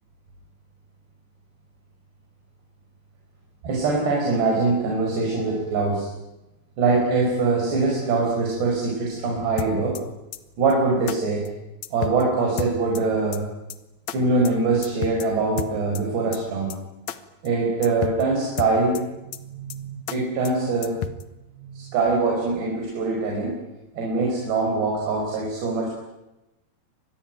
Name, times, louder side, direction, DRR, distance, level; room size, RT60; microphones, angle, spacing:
voice 1, 3.6-6.1 6.8-10.0 10.6-11.5 11.9-13.4 14.1-16.7 17.4-21.0 21.6-23.5 24.0-25.9, right 3 dB, 80° right, -1 dB, 7.3 m, -23 dB
sound 1, 9.6-10.0 10.3-10.4 10.7-10.8 11.1-11.2 11.4-11.5 11.8-12.2 12.6-13.0 13.3-13.4 13.7-13.8 14.1-14.2 14.4-14.5 14.8-15.3 15.6-16.0 16.3-16.4 16.7-16.8 17.1-17.2 17.4-17.5 17.8-18.2 18.6-19.0 19.3-19.4 19.7-19.8 20.1-20.2 20.4-20.5 20.8-21.2, left 9 dB, 65° left, 1.8 m, -31 dB
26.0 x 20.5 x 9.2 m, 0.95 s
omnidirectional pair, 4.8 m